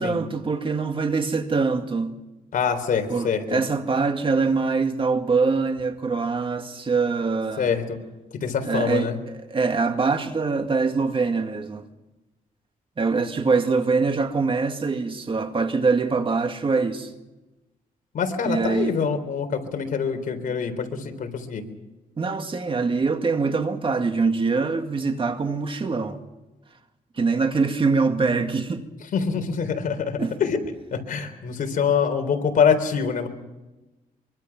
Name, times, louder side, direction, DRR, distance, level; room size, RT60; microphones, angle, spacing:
voice 1, 0.0-2.2 3.1-7.8 8.6-11.8 13.0-17.1 18.4-19.0 22.2-26.2 27.2-28.9 30.2-30.4, right 4 dB, 35° right, 2.1 m, -24 dB
voice 2, 2.5-3.6 7.6-8.0 8.4-9.2 18.1-21.6 29.1-30.6 30.9-33.3, left 6 dB, 65° left, 3.9 m, -25 dB
25.0 x 24.0 x 6.0 m
cardioid pair, 105°, 15 cm